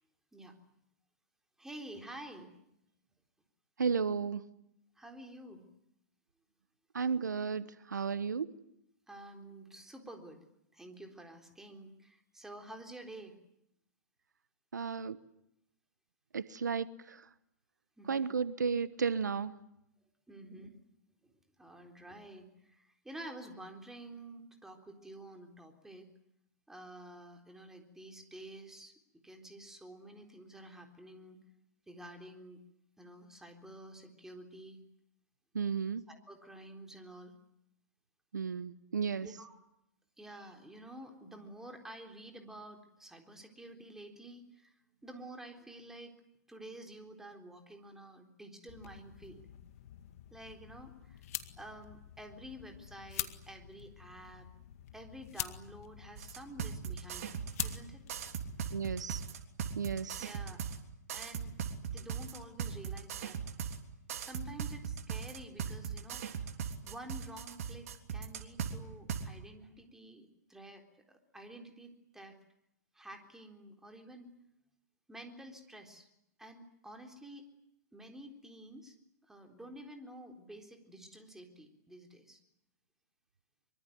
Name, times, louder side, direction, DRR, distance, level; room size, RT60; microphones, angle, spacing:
voice 1, 1.6-2.5 5.0-5.6 9.1-10.4 10.7-13.4 18.0-18.3 20.3-20.8 21.2-21.3 21.6-26.1 26.7-31.4 31.9-32.6 33.0-34.8 36.1-37.3 39.2-39.6 40.2-46.1 46.5-49.5 50.3-51.3 51.6-54.5 54.9-57.4 57.6-58.0 60.2-60.6 61.1-61.5 61.8-63.4 64.2-66.6 66.8-70.8 71.1-72.4 72.9-74.3 75.1-76.1 76.4-77.5 77.9-79.0 79.2-82.4, right 1 dB, 5° right, 3.9 m, -50 dB
voice 2, 3.8-4.4 6.9-8.5 14.7-15.2 16.3-17.3 18.1-19.5 35.5-36.0 38.3-39.3 58.7-59.2 59.7-60.3, right 6 dB, 85° right, 1.2 m, -33 dB
sound 1, 48.7-59.0, left 12 dB, 55° left, 2.1 m, -45 dB
sound 2, 56.2-57.8 58.1-60.8 61.1-63.8 64.1-68.7 69.1-69.2, right 7 dB, 60° right, 3.4 m, -38 dB
24.0 x 24.0 x 9.3 m
hypercardioid pair, 125°, 9 cm